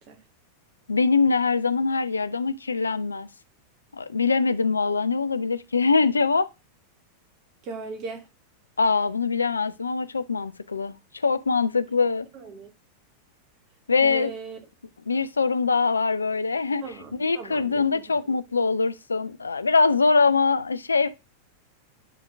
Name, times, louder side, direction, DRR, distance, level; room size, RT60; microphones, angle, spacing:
voice 1, 0.9-3.3 3.9-6.5 8.8-11.0 11.2-12.3 13.9-14.3 15.1-21.1, left 4 dB, 75° left, 0.4 m, -23 dB
voice 2, 7.6-8.3 12.3-12.7 14.0-14.6 16.8-17.9, right 4 dB, 40° right, 1.5 m, -37 dB
9.1 x 3.6 x 3.3 m
figure-of-eight pair, 90°, 0 cm